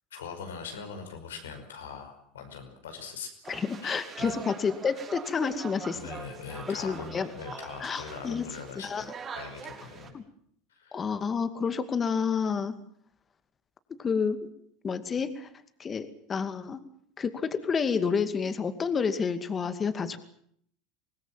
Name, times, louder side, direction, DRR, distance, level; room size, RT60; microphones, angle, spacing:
voice 1, 0.1-3.3 3.8-4.4 5.9-10.2 10.7-11.0, left 6 dB, 85° left, 5 dB, 5.4 m, -42 dB
sound 1, 3.4-10.1, right 6 dB, 35° right, 6.2 m, -43 dB
voice 2, 3.5-6.0 6.7-7.3 7.8-8.4 8.8-9.0 10.1-10.2 10.9-12.7 14.0-14.5 14.8-15.5 15.8-16.8 17.2-20.2, left 6 dB, 30° left, 10 dB, 2.4 m, -29 dB
25.0 x 19.5 x 7.6 m, 0.66 s
hypercardioid pair, 85°, 0 cm